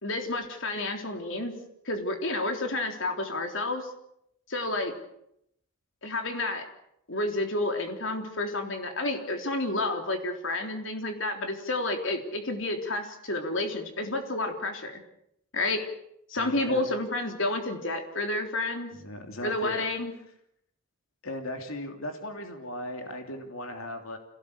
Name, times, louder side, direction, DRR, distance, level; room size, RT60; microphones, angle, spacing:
voice 1, 0.0-1.5 1.9-3.9 4.5-4.9 6.0-6.7 7.1-15.0 15.5-15.9 16.3-18.9 19.4-20.1, left 2 dB, 65° left, 5 dB, 3.6 m, -30 dB
voice 2, 16.4-16.8 18.9-19.8 21.2-24.2, left 1 dB, 80° left, 5 dB, 3.1 m, -37 dB
26.5 x 18.0 x 8.4 m, 0.76 s
head